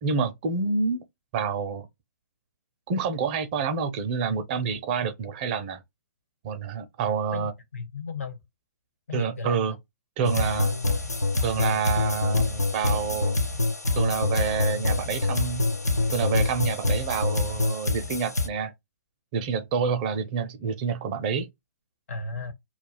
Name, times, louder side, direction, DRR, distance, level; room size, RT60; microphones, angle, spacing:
voice 1, 0.0-1.0 1.3-1.9 2.9-5.8 6.4-7.5 9.1-9.8 10.2-10.7 11.4-13.4 13.9-15.6 16.1-18.7 19.3-21.5, right 6 dB, 30° right, 0.5 m, -28 dB
voice 2, 7.3-8.4 9.1-9.6 22.1-22.5, left 4 dB, 60° left, 1.1 m, -35 dB
sound 1, 10.2-18.5, left 2 dB, 90° left, 0.5 m, -26 dB
2.3 x 2.2 x 3.1 m
figure-of-eight pair, 125°, 9 cm